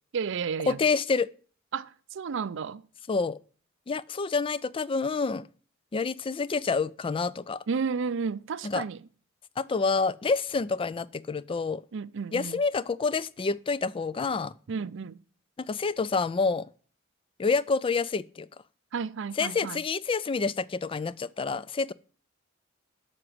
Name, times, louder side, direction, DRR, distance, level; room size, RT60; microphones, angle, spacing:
voice 1, 0.1-0.8 1.7-2.8 7.7-9.0 11.9-12.6 14.7-15.2 18.9-19.8, right 5 dB, 65° right, 0.5 m, -32 dB
voice 2, 0.7-1.3 3.1-3.4 3.9-5.5 5.9-7.6 8.6-8.8 9.6-11.8 12.3-14.5 15.7-16.7 17.4-18.5 19.4-21.9, left 4 dB, 25° left, 0.3 m, -28 dB
7.6 x 6.1 x 7.8 m
head